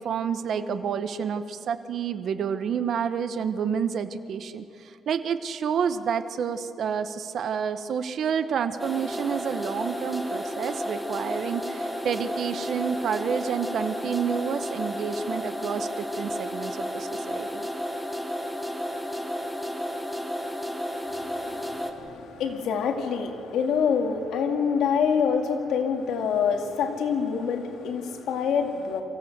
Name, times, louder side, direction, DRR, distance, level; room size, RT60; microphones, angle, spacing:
voice 1, 0.0-17.7, right 7 dB, 55° right, 11 dB, 0.9 m, -29 dB
sound 1, 8.8-21.9, equal, ahead, 1.4 m, -32 dB
voice 2, 21.1-29.0, left 6 dB, 80° left, 4 dB, 2.2 m, -26 dB
24.0 x 15.0 x 8.0 m, 2.8 s
cardioid pair, 150°, 0 cm